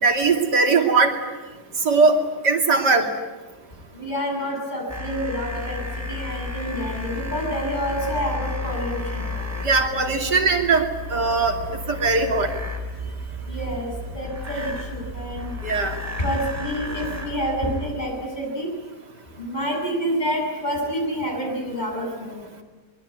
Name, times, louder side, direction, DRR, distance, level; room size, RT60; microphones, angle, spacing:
voice 1, 0.0-1.1 1.8-2.2 2.4-3.1 9.6-11.6 11.9-12.5 15.6-15.9, right 4 dB, 85° right, 4 dB, 3.4 m, -19 dB
voice 2, 3.9-9.3 13.5-15.5 16.2-18.7 19.4-22.4, equal, 25° left, -1 dB, 8.1 m, -28 dB
sound 1, 4.9-18.0, left 2 dB, 10° right, 3.8 m, -32 dB
24.0 x 22.5 x 9.6 m, 1.2 s
omnidirectional pair, 1.7 m